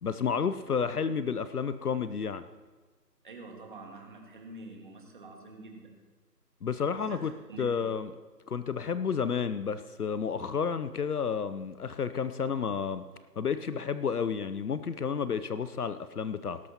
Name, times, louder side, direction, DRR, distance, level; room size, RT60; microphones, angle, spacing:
voice 1, 0.0-2.4 6.6-7.3 7.6-8.1 8.5-13.0 13.4-16.6, left 6 dB, 65° left, 12 dB, 0.7 m, -31 dB
voice 2, 3.2-6.0 6.9-7.9, right 2 dB, 30° right, 1 dB, 1.9 m, -47 dB
18.5 x 12.0 x 2.9 m, 1.4 s
figure-of-eight pair, 165°, 49 cm